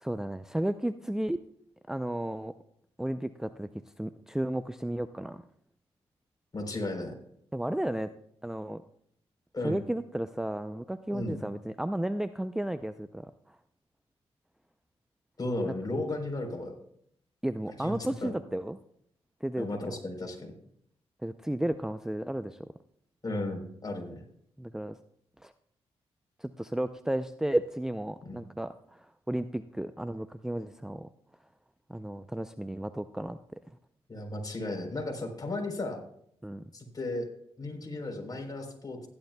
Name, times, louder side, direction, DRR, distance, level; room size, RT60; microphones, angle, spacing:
voice 1, 0.0-1.4 1.9-2.5 3.0-3.7 4.0-5.4 7.5-8.1 8.4-8.8 9.6-13.3 17.4-18.8 19.4-19.7 21.2-22.6 24.6-25.0 25.4-25.5 26.4-31.1 31.9-33.4 36.4-36.6, right 1 dB, 5° right, 11 dB, 0.5 m, -33 dB
voice 2, 6.5-7.1 9.5-9.8 11.1-11.4 15.4-16.8 17.8-18.3 19.6-20.5 23.2-24.2 28.2-28.4 34.1-36.0 36.7-37.3 37.6-39.1, left 2 dB, 35° left, 2 dB, 3.7 m, -35 dB
16.0 x 10.5 x 2.2 m, 0.68 s
cardioid pair, 60°, 11 cm